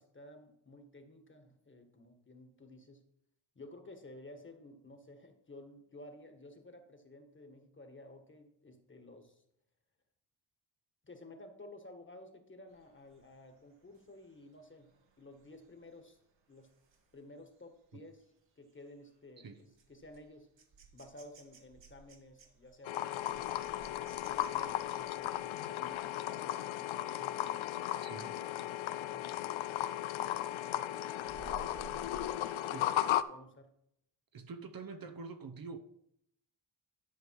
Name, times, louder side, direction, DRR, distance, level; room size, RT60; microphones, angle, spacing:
voice 1, 0.0-3.0 3.5-9.4 11.0-14.9 15.2-16.2 16.5-16.8 17.1-20.5 20.9-23.6 24.3-30.5 30.9-32.0 32.3-33.7, left 1 dB, 25° left, 1.7 m, -54 dB
sound 1, 12.7-27.2 27.7-28.0 28.3-30.0 30.3-32.3, right 5 dB, 65° right, 1.8 m, -59 dB
sound 2, 22.8-33.2, left 13 dB, 75° left, 0.6 m, -36 dB
voice 2, 28.0-28.3 32.7-32.9 34.3-35.8, right 4 dB, 45° right, 0.9 m, -45 dB
11.5 x 5.1 x 4.7 m
cardioid pair, 75°, 47 cm